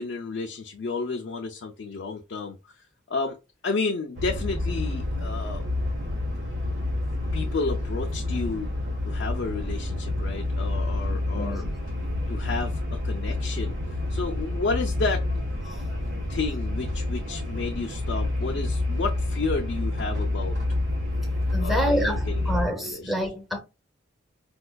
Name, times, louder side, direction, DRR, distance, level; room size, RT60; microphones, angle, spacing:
voice 1, 0.0-2.6 3.1-3.4 3.6-5.6 7.3-8.7 9.0-11.7 12.3-13.8 14.1-15.2 16.3-20.6 21.6-23.1, left 4 dB, 60° left, 0.5 m, -31 dB
sound 1, 4.2-22.6, left 2 dB, 70° right, 1.2 m, -28 dB
voice 2, 11.1-11.7 21.5-23.6, equal, ahead, 0.7 m, -28 dB
4.3 x 2.3 x 2.2 m
head